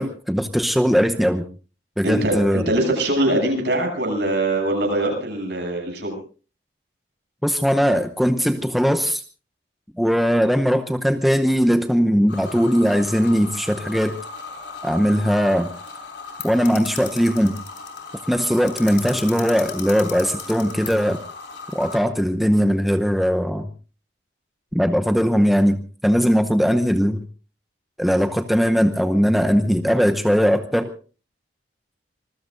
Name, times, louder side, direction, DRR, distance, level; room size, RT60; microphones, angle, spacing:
voice 1, 0.0-1.5 2.0-2.6 7.4-9.2 10.0-14.2 14.8-15.7 16.4-17.6 18.3-21.2 21.7-23.7 24.7-27.2 28.0-30.9, equal, ahead, 7 dB, 0.7 m, -19 dB
voice 2, 2.0-6.2, right 1 dB, 70° right, 3 dB, 7.9 m, -22 dB
sound 1, 12.3-22.0, left 5 dB, 80° left, 5.6 m, -36 dB
26.0 x 21.0 x 2.6 m, 0.37 s
head